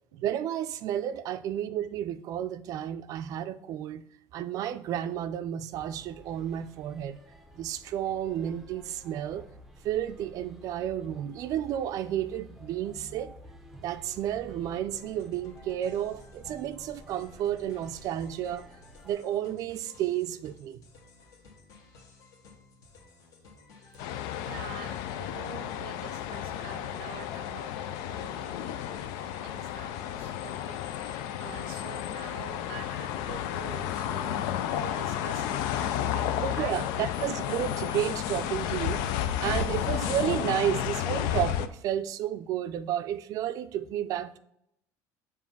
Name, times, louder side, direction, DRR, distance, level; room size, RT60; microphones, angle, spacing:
voice 1, 0.2-4.0 4.3-7.2 7.5-9.5 9.8-13.3 13.8-18.7 19.0-20.8 36.4-44.4, right 11 dB, 55° right, 0.4 m, -32 dB
sound 1, 5.7-19.1, right 1 dB, ahead, 0.6 m, -51 dB
sound 2, 14.9-31.2, left 4 dB, 55° left, 1.3 m, -56 dB
sound 3, 24.0-41.7, left 11 dB, 75° left, 0.4 m, -32 dB
voice 2, 24.4-36.9 37.2-37.3, right 8 dB, 90° right, 0.7 m, -46 dB
7.1 x 2.7 x 5.4 m
cardioid pair, 125°, 7 cm